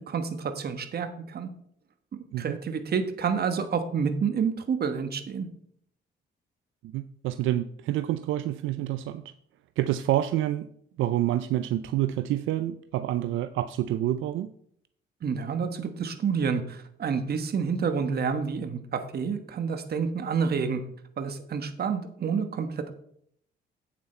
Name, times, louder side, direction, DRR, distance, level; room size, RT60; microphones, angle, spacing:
voice 1, 0.0-1.5 2.4-5.5 15.2-20.8 21.2-22.9, right 6 dB, 50° right, 8 dB, 1.3 m, -29 dB
voice 2, 6.9-9.3 9.8-10.7 11.0-14.5, right 13 dB, 80° right, 12 dB, 0.4 m, -28 dB
8.7 x 7.4 x 4.3 m, 0.68 s
cardioid pair, 90°, 20 cm